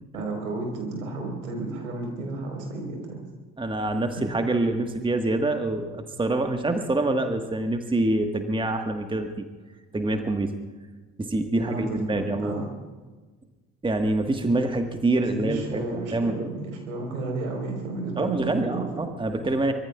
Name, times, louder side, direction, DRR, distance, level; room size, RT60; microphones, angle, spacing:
voice 1, 0.1-3.2 4.2-4.3 11.7-12.7 15.2-19.1, right 3 dB, 70° right, 2 dB, 4.2 m, -32 dB
voice 2, 3.6-9.5 9.9-10.5 11.2-12.6 13.8-16.5 18.2-19.7, right 2 dB, 10° right, 6 dB, 1.4 m, -26 dB
24.0 x 22.5 x 2.4 m, 1.3 s
figure-of-eight pair, 50°, 43 cm